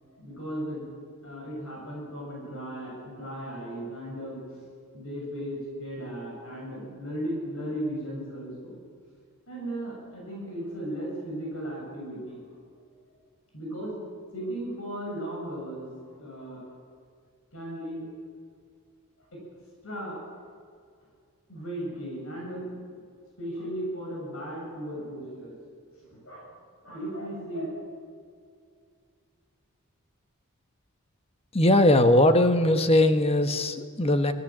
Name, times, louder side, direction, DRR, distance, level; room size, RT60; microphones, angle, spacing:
voice 1, 0.1-0.9 1.2-4.6 4.9-8.8 9.5-12.4 13.5-14.0 14.3-16.7 17.5-18.1 19.3-19.4 19.8-20.5 21.5-22.9 23.4-25.6 26.0-26.5 26.8-27.7, right 1 dB, 65° left, -3 dB, 7.1 m, -36 dB
voice 2, 31.5-34.3, left 1 dB, 25° left, 8 dB, 1.2 m, -20 dB
25.0 x 17.5 x 7.4 m, 2.2 s
head